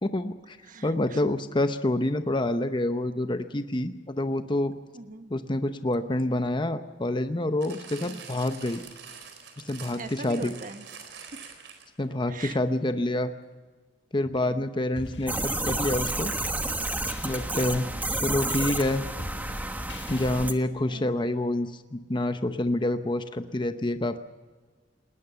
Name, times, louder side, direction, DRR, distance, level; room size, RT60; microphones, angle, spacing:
voice 1, 0.0-0.6 0.8-4.7 5.3-8.8 9.6-10.5 12.0-13.3 14.1-16.3 17.2-19.1 20.1-24.2, left 1 dB, 25° left, 9 dB, 0.8 m, -27 dB
voice 2, 0.6-1.4 4.9-5.3 8.0-8.2 9.9-11.3 12.3-12.6 14.4-14.7 17.5-18.0 20.9-21.4, right 3 dB, 50° right, 9 dB, 1.3 m, -43 dB
sound 1, 7.6-12.0 12.8-12.9, right 6 dB, 85° right, 4.2 m, -45 dB
sound 2, 15.0-20.6, left 2 dB, 70° left, 1.5 m, -44 dB
sound 3, 15.3-20.5, right 2 dB, 10° right, 1.2 m, -30 dB
19.5 x 19.5 x 6.9 m, 1.4 s
head